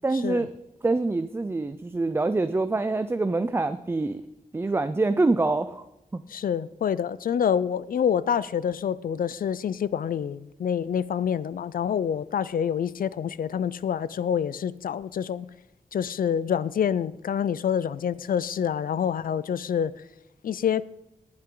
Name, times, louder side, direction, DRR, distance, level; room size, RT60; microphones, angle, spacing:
voice 1, 0.0-0.5 0.8-4.2 4.5-5.8 6.1-6.2, right 3 dB, 15° right, 11 dB, 0.4 m, -25 dB
voice 2, 6.3-15.5 15.9-19.9 20.4-20.8, left 8 dB, 75° left, 18 dB, 0.5 m, -27 dB
19.0 x 8.7 x 3.8 m, 0.95 s
wide cardioid pair, 150°, 15 cm